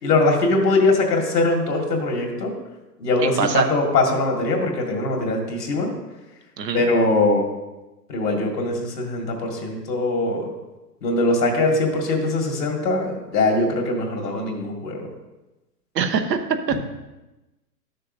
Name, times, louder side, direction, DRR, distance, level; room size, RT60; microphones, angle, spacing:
voice 1, 0.0-2.5 3.0-5.9 6.7-7.4 8.1-10.5 11.0-15.1, left 2 dB, 75° left, 2 dB, 2.1 m, -21 dB
voice 2, 3.2-3.7 6.6-6.9 15.9-16.4 16.7-16.8, right 6 dB, 80° right, 7 dB, 1.0 m, -23 dB
12.0 x 6.5 x 2.6 m, 1.0 s
hypercardioid pair, 130°, 49 cm